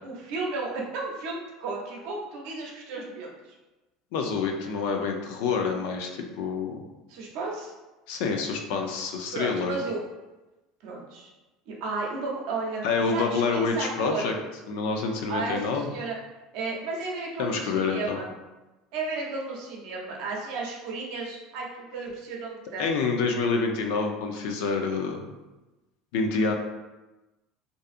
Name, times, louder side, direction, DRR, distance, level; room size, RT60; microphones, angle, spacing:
voice 1, 0.0-3.3 7.1-7.7 9.3-10.0 10.8-11.3 11.7-12.9 13.1-14.3 15.3-16.2 16.5-18.3 18.9-22.9, right 3 dB, 70° right, -1 dB, 0.7 m, -33 dB
voice 2, 4.1-6.8 8.1-9.8 12.8-14.3 14.7-15.9 17.4-18.2 22.8-25.2 26.1-26.5, left 4 dB, 75° left, 3 dB, 0.4 m, -27 dB
2.6 x 2.4 x 2.5 m, 1.1 s
hypercardioid pair, 85°, 0 cm